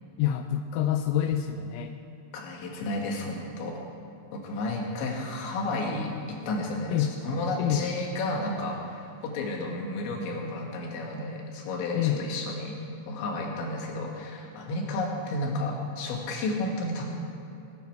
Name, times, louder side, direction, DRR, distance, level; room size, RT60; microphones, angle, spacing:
voice 1, 0.2-2.0 6.9-7.1 7.6-7.9 12.0-12.2, left 11 dB, 90° left, 7 dB, 3.1 m, -27 dB
voice 2, 2.3-3.8 4.3-12.8 13.1-17.1, left 2 dB, 70° left, 0 dB, 3.9 m, -32 dB
21.5 x 9.7 x 4.8 m, 2.7 s
omnidirectional pair, 5.7 m